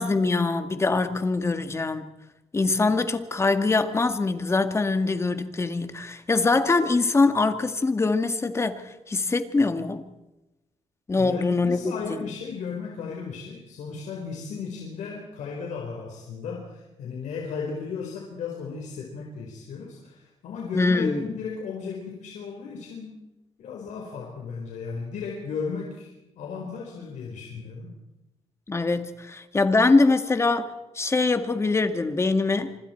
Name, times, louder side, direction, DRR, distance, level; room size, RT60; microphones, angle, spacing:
voice 1, 0.0-2.1 2.5-10.0 11.1-11.8 12.1-12.3 20.7-21.2 28.7-32.8, left 3 dB, 20° left, 9 dB, 1.8 m, -23 dB
voice 2, 11.2-23.2 23.6-27.9, left 5 dB, 80° left, -1 dB, 4.6 m, -35 dB
26.5 x 25.5 x 4.6 m, 0.98 s
cardioid pair, 120°, 12 cm